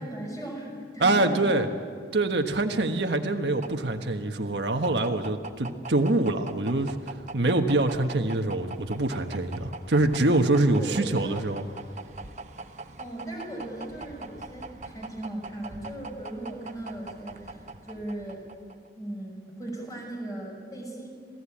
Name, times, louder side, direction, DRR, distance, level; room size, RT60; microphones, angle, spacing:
voice 1, 0.0-1.6 10.6-11.4 12.6-12.7 13.0-18.4 19.0-21.1, right 1 dB, 20° left, 0 dB, 6.1 m, -37 dB
voice 2, 1.0-1.7 2.1-11.6, right 2 dB, 80° right, 5 dB, 1.4 m, -25 dB
sound 1, 2.9-18.9, right 3 dB, 40° right, 0.9 m, -42 dB
27.0 x 17.0 x 8.7 m, 2.1 s
head